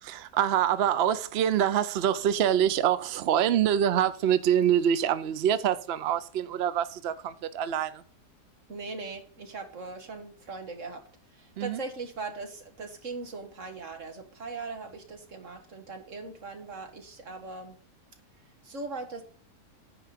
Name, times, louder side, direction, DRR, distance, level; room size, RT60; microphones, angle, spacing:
voice 1, 0.0-8.0 11.6-11.8, right 10 dB, 75° right, 0.5 m, -25 dB
voice 2, 8.7-17.8 18.6-19.2, right 3 dB, 50° right, 1.9 m, -40 dB
9.9 x 4.8 x 6.8 m
omnidirectional pair, 1.8 m